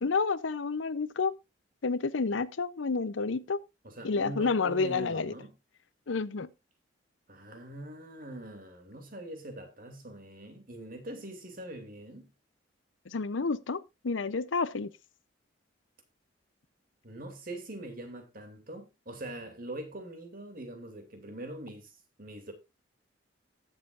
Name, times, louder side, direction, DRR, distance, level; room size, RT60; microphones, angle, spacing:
voice 1, 0.0-1.3 1.8-3.6 4.0-5.3 6.1-6.5 13.1-14.9, left 4 dB, 80° left, 0.7 m, -30 dB
voice 2, 3.8-5.5 7.3-12.3 17.0-21.9 22.2-22.5, right 1 dB, 50° right, 2.6 m, -43 dB
18.5 x 7.5 x 2.5 m
head